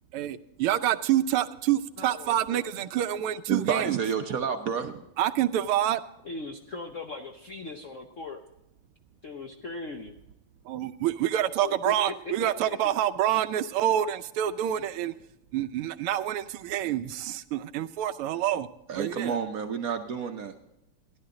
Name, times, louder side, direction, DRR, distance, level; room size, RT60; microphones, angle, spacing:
voice 1, 0.1-4.0 5.2-6.0 10.7-15.1 15.5-18.7 18.9-19.4, right 12 dB, 80° right, 12 dB, 1.6 m, -27 dB
voice 2, 2.0-2.7 6.2-8.4 9.2-10.1 11.6-12.9, left 3 dB, 60° left, 3 dB, 0.8 m, -39 dB
voice 3, 3.5-5.0 18.9-20.5, right 7 dB, 60° right, 6 dB, 1.0 m, -29 dB
15.0 x 11.0 x 3.8 m, 0.86 s
omnidirectional pair, 2.4 m